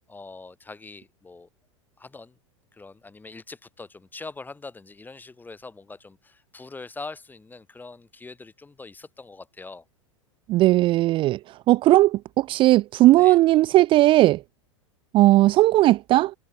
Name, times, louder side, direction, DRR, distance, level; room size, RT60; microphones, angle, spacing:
voice 1, 0.1-1.5 2.0-2.4 2.7-9.8 13.1-13.4, left 3 dB, 10° left, 4.7 m, -42 dB
voice 2, 10.5-14.4 15.1-16.3, right 16 dB, 30° right, 0.5 m, -17 dB
figure-of-eight pair, 90°, 17 cm